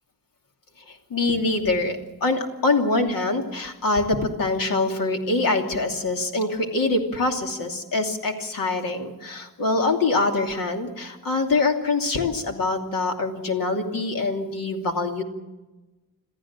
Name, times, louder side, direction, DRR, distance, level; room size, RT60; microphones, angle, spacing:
voice 1, 1.1-15.2, left 3 dB, 75° left, 3 dB, 2.9 m, -24 dB
28.0 x 14.0 x 7.5 m, 1.1 s
wide cardioid pair, 180°, 34 cm